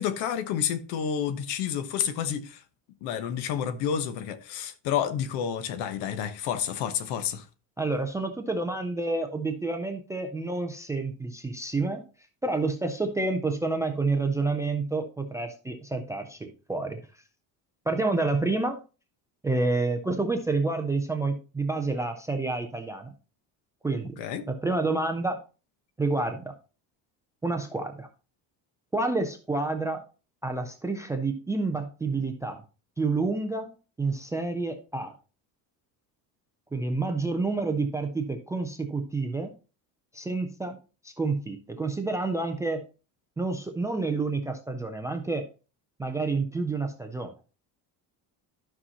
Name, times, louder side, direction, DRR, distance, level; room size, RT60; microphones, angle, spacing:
voice 1, 0.0-2.6 3.0-7.4 24.2-24.4, left 8 dB, 75° left, 1.1 m, -30 dB
voice 2, 7.8-12.0 12.4-17.0 17.9-18.8 19.4-23.1 23.8-24.2 24.5-25.4 26.0-26.5 27.4-28.1 28.9-30.0 30.4-32.6 33.0-33.7 34.0-35.1 36.7-39.5 40.1-40.8 41.0-42.8 43.4-45.5 46.0-47.3, right 3 dB, 10° right, 0.3 m, -29 dB
12.0 x 5.6 x 2.8 m
cardioid pair, 175°, 41 cm